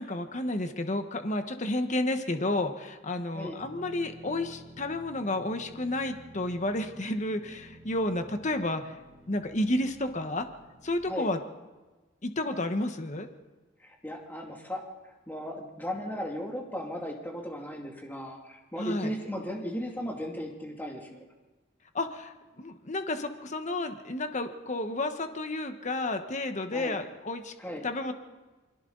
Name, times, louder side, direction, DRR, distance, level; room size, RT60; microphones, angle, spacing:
voice 1, 0.0-8.9 9.3-10.5 10.8-11.4 12.2-13.3 18.8-19.1 21.9-27.5 27.8-28.1, left 1 dB, 40° left, 7 dB, 1.3 m, -31 dB
sound 1, 3.6-11.0, right 1 dB, 30° right, 4.6 m, -52 dB
voice 2, 13.8-14.9 15.3-21.3 26.7-27.0 27.6-27.9, equal, 10° left, 0 dB, 2.5 m, -36 dB
28.5 x 23.0 x 4.0 m, 1.2 s
head